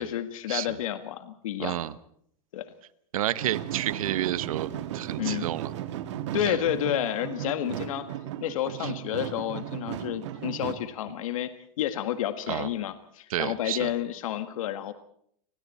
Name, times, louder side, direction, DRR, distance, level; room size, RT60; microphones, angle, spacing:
voice 1, 0.0-1.8 2.5-2.7 5.2-5.5 6.3-8.0 8.4-11.5 11.8-14.9, left 11 dB, 60° left, 9 dB, 1.8 m, -30 dB
voice 2, 1.6-1.9 3.1-5.7 6.4-6.6 8.8-8.9 12.5-12.7 13.3-13.9, right 12 dB, 65° right, 15 dB, 1.2 m, -30 dB
sound 1, 3.4-10.7, right 12 dB, 50° right, 1.8 m, -35 dB
30.0 x 21.5 x 4.3 m, 0.66 s
supercardioid pair, 165°, 19 cm